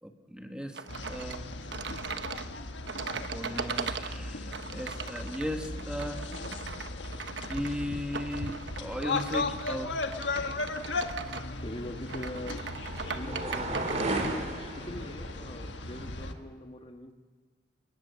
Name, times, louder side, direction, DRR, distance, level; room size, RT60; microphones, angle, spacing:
voice 1, 0.0-0.8 1.1-1.5 3.1-6.2 7.5-9.9, equal, 5° right, 4 dB, 1.7 m, -36 dB
sound 1, 0.7-14.4, right 5 dB, 80° right, 1.1 m, -39 dB
sound 2, 0.9-16.3, left 3 dB, 90° left, 1.4 m, -37 dB
sound 3, 11.4-16.4, right 2 dB, 40° right, 3.1 m, -37 dB
voice 2, 11.6-12.7 13.1-13.9 14.8-17.1, left 1 dB, 30° left, 5 dB, 1.5 m, -42 dB
28.5 x 19.5 x 7.0 m, 1.5 s
head